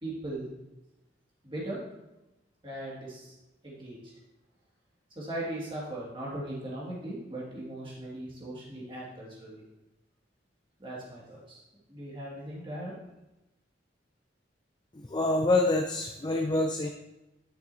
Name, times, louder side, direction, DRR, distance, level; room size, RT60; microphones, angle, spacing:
voice 1, 0.0-0.5 1.4-1.8 2.6-3.3 3.6-4.1 5.2-9.6 10.8-11.6 11.9-12.9, right 1 dB, 30° right, -6 dB, 2.3 m, -38 dB
voice 2, 14.9-16.9, left 2 dB, 25° left, 3 dB, 0.5 m, -26 dB
10.5 x 6.5 x 2.8 m, 0.96 s
head